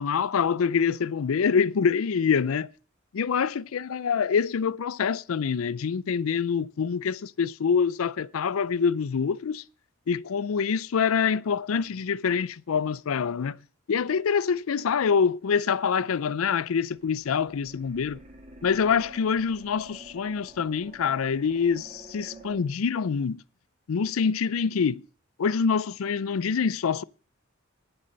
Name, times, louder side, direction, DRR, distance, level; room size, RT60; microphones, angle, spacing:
voice 1, 0.0-2.7 3.1-9.6 10.1-13.6 13.9-18.2 18.6-23.4 23.9-25.0 25.4-27.0, left 6 dB, 85° left, 0.4 m, -25 dB
sound 1, 16.9-22.6, right 2 dB, 35° right, 3.1 m, -49 dB
11.0 x 6.7 x 7.7 m
head